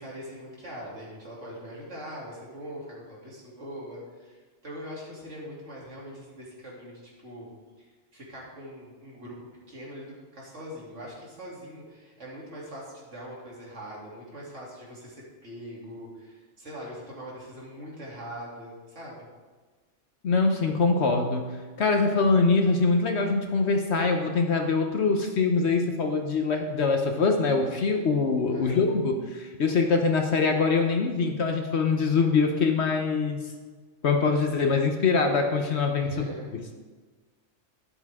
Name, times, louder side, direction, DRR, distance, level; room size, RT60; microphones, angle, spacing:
voice 1, 0.0-7.5 7.8-9.3 9.7-19.3 28.5-28.8 36.0-36.5, equal, 70° right, -4 dB, 3.2 m, -42 dB
voice 2, 20.2-33.4 34.0-36.3, left 4 dB, 60° left, 4 dB, 1.1 m, -24 dB
12.0 x 10.5 x 3.6 m, 1.4 s
omnidirectional pair, 1.3 m